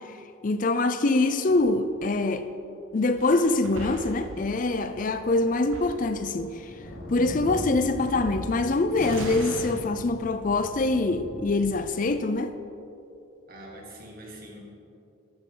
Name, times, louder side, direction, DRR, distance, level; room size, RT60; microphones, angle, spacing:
voice 1, 0.4-2.4 2.9-6.5 7.1-12.5, left 2 dB, 40° left, 0.4 m, -24 dB
sound 1, 1.5-2.2 2.9-4.0 4.2-11.8, equal, 65° left, 1.6 m, -42 dB
sound 2, 3.2-5.0 5.2-5.3 5.5-6.5 7.6-7.7 9.0-9.8, right 2 dB, 85° right, 1.2 m, -38 dB
voice 2, 13.5-14.6, right 1 dB, 45° right, 2.4 m, -44 dB
14.0 x 11.5 x 3.9 m
head